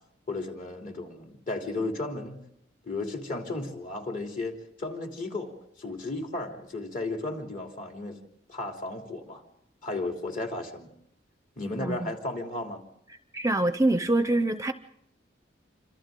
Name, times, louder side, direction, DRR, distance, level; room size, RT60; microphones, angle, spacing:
voice 1, 0.3-2.4 2.8-8.2 8.5-9.4 9.8-10.9 11.6-12.8, left 2 dB, 45° left, 3.2 m, -34 dB
voice 2, 13.3-14.7, right 2 dB, 15° right, 0.7 m, -24 dB
27.5 x 26.0 x 3.8 m
head